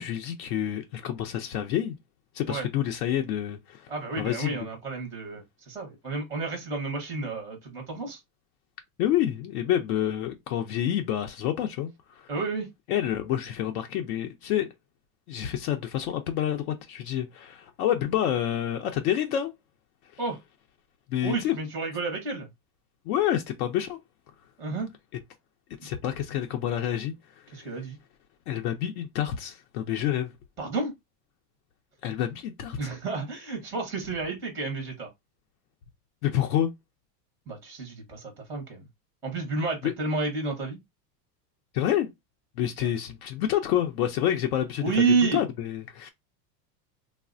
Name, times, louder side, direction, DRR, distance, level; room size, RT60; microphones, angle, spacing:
voice 1, 0.0-2.0 2.3-3.9 4.2-4.6 9.0-12.3 12.9-14.7 15.3-19.5 21.1-21.6 23.1-24.0 25.8-27.4 28.5-30.3 32.0-32.8 36.2-36.7 39.8-39.9 41.7-42.1 42.6-45.0 45.3-46.1, left 11 dB, 65° left, 0.6 m, -28 dB
voice 2, 3.9-8.2 12.3-12.7 20.2-20.4 21.2-22.5 24.6-24.9 27.5-28.0 30.6-30.9 32.8-35.1 37.5-38.8 39.2-40.8 42.8-42.9 44.8-45.4, right 4 dB, 5° right, 0.5 m, -30 dB
3.2 x 2.0 x 2.4 m
supercardioid pair, 150°, 49 cm